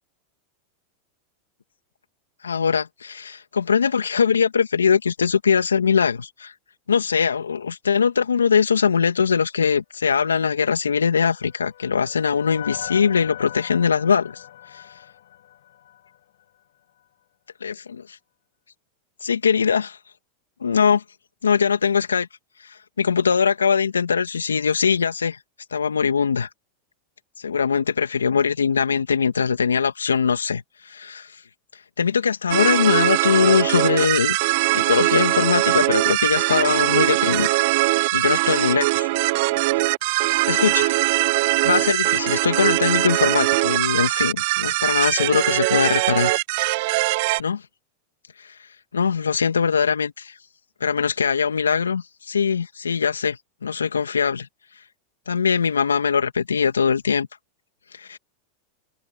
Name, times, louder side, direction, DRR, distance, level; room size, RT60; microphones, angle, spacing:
voice 1, 2.4-6.5 6.9-14.4 14.7-14.8 17.6-18.2 19.2-20.0 20.6-21.0 21.4-22.3 23.0-25.4 25.7-26.5 27.4-31.3 32.0-34.4 34.7-37.6 38.1-39.1 40.5-41.0 41.6-46.4 47.4-47.6 48.4-48.5 48.9-50.3 50.8-54.5 55.3-57.3 57.9-58.2, left 6 dB, 90° left, 2.6 m, -21 dB
sound 1, 10.9-16.2, left 12 dB, 70° left, 2.6 m, -40 dB
sound 2, 32.5-47.4, right 23 dB, 60° right, 0.4 m, -21 dB
hypercardioid pair, 95°, 0 cm